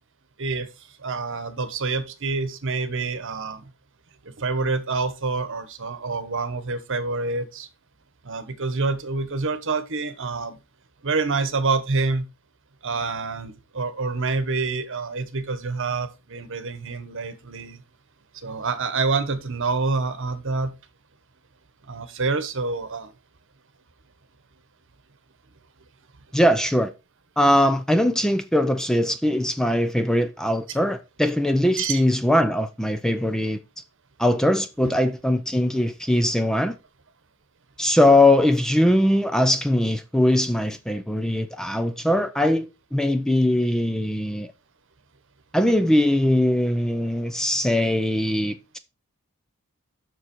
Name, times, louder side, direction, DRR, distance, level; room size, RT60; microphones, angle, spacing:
voice 1, 1.0-3.6 4.4-7.7 8.2-10.6 11.0-12.2 12.8-17.8 18.3-20.7 21.9-23.1 31.8-32.0, right 4 dB, 60° right, 1.2 m, -27 dB
voice 2, 26.3-26.9 27.4-33.6 34.2-36.8 37.8-44.5 45.5-48.8, left 1 dB, 5° left, 0.4 m, -21 dB
7.2 x 6.2 x 4.5 m
head